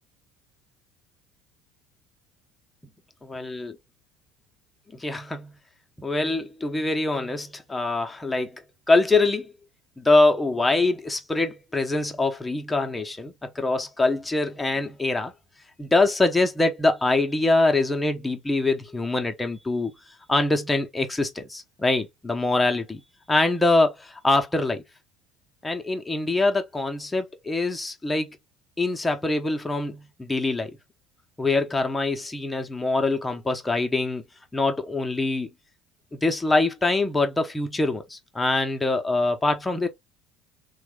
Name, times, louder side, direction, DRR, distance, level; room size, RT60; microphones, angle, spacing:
voice 1, 3.3-3.7 5.0-5.5 6.0-8.6 8.9-9.5 10.0-15.3 15.8-19.9 20.3-23.0 23.3-24.8 25.6-28.4 28.8-30.7 31.4-34.2 34.5-35.5 36.1-39.9, left 2 dB, 15° left, 0.9 m, -24 dB
3.4 x 2.3 x 3.2 m
hypercardioid pair, 65°, 0 cm